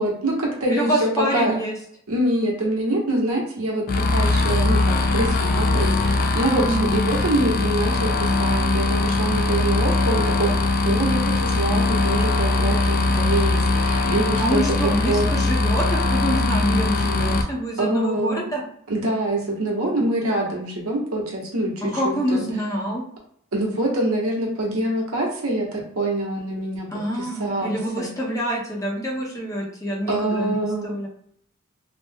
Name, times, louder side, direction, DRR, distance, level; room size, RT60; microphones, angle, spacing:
voice 1, 0.0-1.5 2.1-10.5 10.8-15.3 17.8-18.5 18.9-21.7 22.0-22.4 23.5-26.9 27.1-28.1 30.1-30.9, right 1 dB, 90° right, -2 dB, 1.0 m, -25 dB
voice 2, 0.7-1.7 6.6-6.9 14.4-18.6 21.8-23.0 26.9-31.1, equal, 15° left, -3 dB, 0.7 m, -26 dB
sound 1, 3.9-17.4, left 2 dB, 40° left, 0.3 m, -21 dB
2.9 x 2.1 x 3.4 m, 0.67 s
head